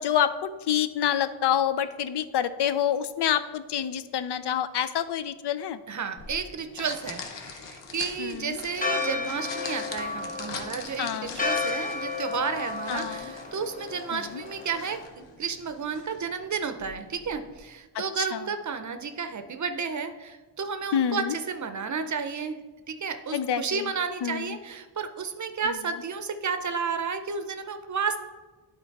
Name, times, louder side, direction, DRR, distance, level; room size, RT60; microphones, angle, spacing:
voice 1, 0.0-5.8 8.2-8.6 11.0-11.4 12.9-13.3 14.1-14.4 18.3-18.4 20.9-21.3 23.3-23.9 24.2-24.6 25.7-25.8, left 9 dB, 70° left, 12 dB, 0.5 m, -27 dB
voice 2, 5.9-28.2, right 5 dB, 45° right, 9 dB, 0.6 m, -32 dB
sound 1, 6.2-17.6, left 5 dB, 85° left, 1.0 m, -43 dB
Church bell, 8.8-15.1, left 4 dB, 20° left, 0.8 m, -33 dB
11.0 x 3.9 x 4.6 m, 1.3 s
wide cardioid pair, 130°, 42 cm